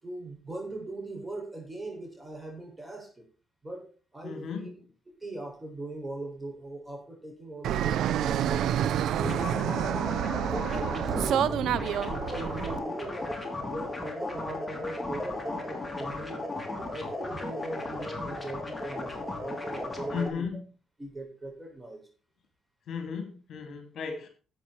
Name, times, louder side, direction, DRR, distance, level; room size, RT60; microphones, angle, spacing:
voice 1, 0.0-3.2 3.6-3.8 4.1-4.7 5.2-10.0 10.4-11.5 11.8-13.4 13.6-20.5 21.0-22.0, right 2 dB, 15° right, 6.6 m, -40 dB
voice 2, 4.2-4.7 20.1-20.6 22.9-24.3, left 6 dB, 60° left, 2.9 m, -35 dB
Fixed-wing aircraft airplane, 7.6-12.8, right 10 dB, 80° right, 0.7 m, -28 dB
sound 1, 9.2-20.3, left 2 dB, 10° left, 3.5 m, -35 dB
13.0 x 8.4 x 4.7 m
cardioid pair, 90°, 0 cm